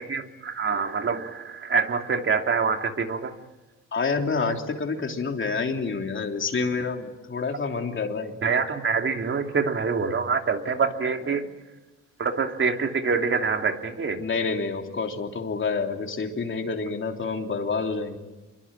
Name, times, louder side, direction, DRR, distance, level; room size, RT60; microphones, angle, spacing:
voice 1, 0.0-3.3 8.4-11.4 12.2-14.2, right 5 dB, 40° right, 4 dB, 2.9 m, -25 dB
voice 2, 3.9-8.5 14.2-18.2, left 4 dB, 40° left, 3 dB, 3.3 m, -28 dB
27.0 x 23.0 x 8.9 m, 1.1 s
cardioid pair, 90°, 30 cm